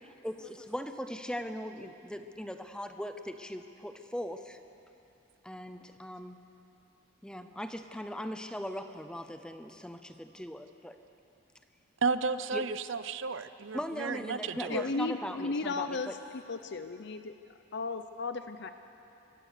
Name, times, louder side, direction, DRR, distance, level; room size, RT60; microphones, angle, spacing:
voice 1, 0.0-4.6 5.4-6.4 7.2-11.0 12.5-12.6 13.7-16.2, equal, 5° left, 8 dB, 0.6 m, -39 dB
voice 2, 12.0-14.9, right 4 dB, 65° right, 13 dB, 0.7 m, -33 dB
voice 3, 14.7-17.3 17.7-18.7, left 3 dB, 55° left, 9 dB, 0.6 m, -35 dB
24.5 x 16.0 x 6.7 m, 2.9 s
head